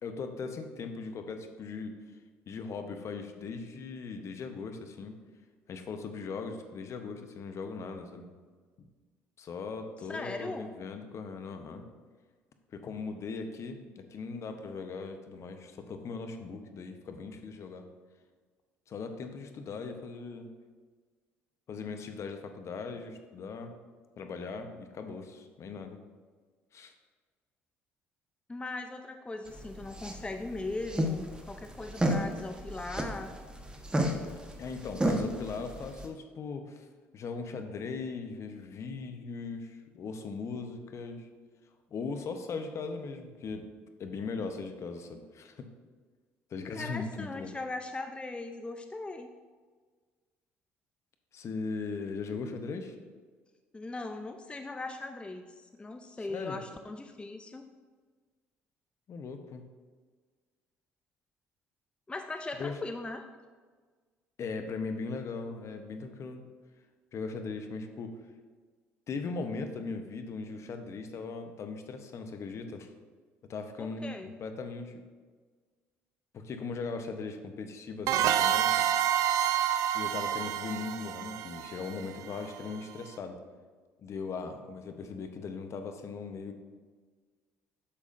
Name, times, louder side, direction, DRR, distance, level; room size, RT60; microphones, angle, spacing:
voice 1, 0.0-2.0 2.5-5.2 5.7-8.3 9.4-11.9 12.7-17.9 18.9-20.5 21.7-23.7 24.2-26.0 26.7-26.9 34.6-36.9 37.1-41.3 41.9-43.7 44.0-45.7 46.5-47.5 51.3-53.0 56.2-56.6 59.1-59.6 62.6-62.8 64.4-66.4 67.1-68.1 69.1-72.9 73.5-75.0 76.3-78.9 79.9-83.4 84.0-86.6, left 4 dB, 50° left, 6 dB, 0.9 m, -39 dB
voice 2, 10.1-10.7 28.5-33.3 46.7-49.3 53.7-57.6 62.1-63.3 73.8-74.3, left 2 dB, 15° left, 6 dB, 0.5 m, -39 dB
sound 1, 29.5-36.1, right 1 dB, 15° right, 1.1 m, -33 dB
sound 2, 78.1-82.6, right 10 dB, 60° right, 0.3 m, -28 dB
8.4 x 7.1 x 2.6 m, 1.5 s
hypercardioid pair, 60°, 6 cm